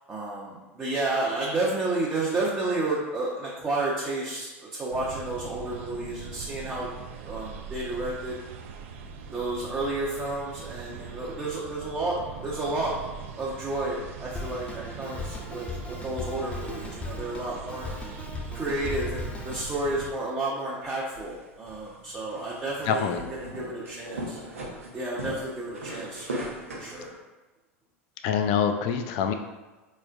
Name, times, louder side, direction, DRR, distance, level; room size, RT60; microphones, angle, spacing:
voice 1, 0.1-6.9 7.3-8.4 9.3-12.9 13.4-17.9 18.5-24.4 24.9-27.1, right 2 dB, 20° right, -5 dB, 0.8 m, -31 dB
sound 1, 4.9-20.1, right 6 dB, 65° right, 0.4 m, -41 dB
Drum kit, 14.3-19.7, left 3 dB, 15° left, 0.7 m, -37 dB
sound 2, 21.0-27.1, right 1 dB, 90° right, 0.8 m, -39 dB
voice 2, 22.9-23.2 28.2-29.3, left 7 dB, 55° left, 6 dB, 0.4 m, -25 dB
4.1 x 3.2 x 2.4 m, 1.2 s
hypercardioid pair, 85°, 7 cm